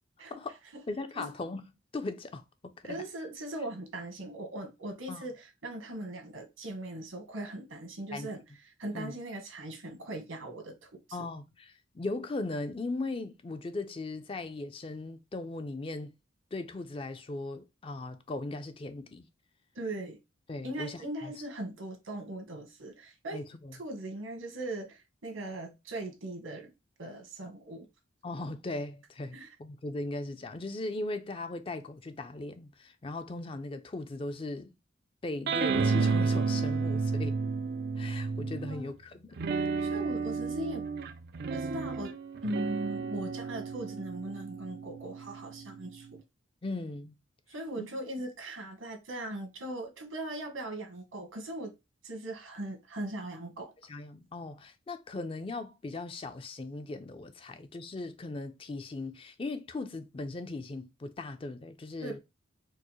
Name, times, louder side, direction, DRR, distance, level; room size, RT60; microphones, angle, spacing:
voice 1, 0.9-1.6 1.9-3.0 5.1-5.2 8.1-8.3 8.9-9.1 11.1-16.1 16.5-19.3 20.5-21.3 23.3-23.8 28.2-34.7 35.2-37.4 38.0-39.4 46.6-47.2 47.8-48.0 53.9-62.2, left 2 dB, 25° left, 0.4 m, -38 dB
voice 2, 2.8-8.4 8.8-11.2 19.7-20.2 20.6-23.4 23.8-26.7 27.0-27.9 29.3-29.5 38.7-38.9 39.5-40.8 41.5-42.1 42.4-46.2 47.5-51.7 52.0-53.7 62.0-62.2, right 1 dB, 90° right, 1.2 m, -39 dB
sound 1, 35.5-38.8 39.4-46.1, right 4 dB, 50° right, 0.4 m, -32 dB
4.5 x 2.0 x 3.0 m
head